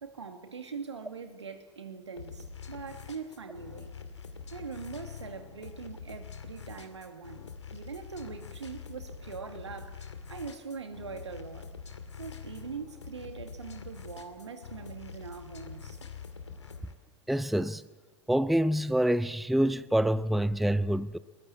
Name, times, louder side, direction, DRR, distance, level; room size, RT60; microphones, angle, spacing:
voice 1, 0.0-3.9 4.5-11.7 12.2-16.0, right 5 dB, 80° right, 2.4 m, -42 dB
sound 1, 2.2-16.9, left 6 dB, 85° left, 2.4 m, -45 dB
voice 2, 17.3-17.8 18.3-21.2, right 1 dB, ahead, 0.6 m, -26 dB
21.0 x 21.0 x 8.3 m
figure-of-eight pair, 85°, 14 cm